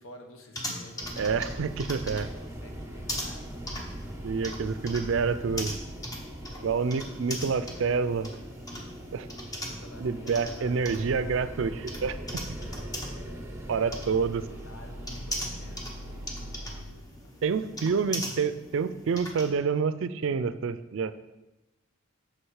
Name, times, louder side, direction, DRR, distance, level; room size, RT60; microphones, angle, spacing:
voice 1, 0.0-3.9 6.5-8.0 9.6-11.7 12.6-18.0, left 1 dB, 75° left, 3 dB, 1.2 m, -51 dB
sound 1, 0.5-19.5, left 1 dB, 20° left, 1.0 m, -40 dB
sound 2, 1.0-16.8, equal, 10° right, 0.7 m, -41 dB
voice 2, 1.2-2.3 4.2-5.8 6.6-8.3 9.1-9.3 10.0-12.4 13.7-14.4 17.4-21.1, right 5 dB, 65° right, 14 dB, 0.4 m, -28 dB
6.5 x 6.3 x 4.7 m, 1.0 s
head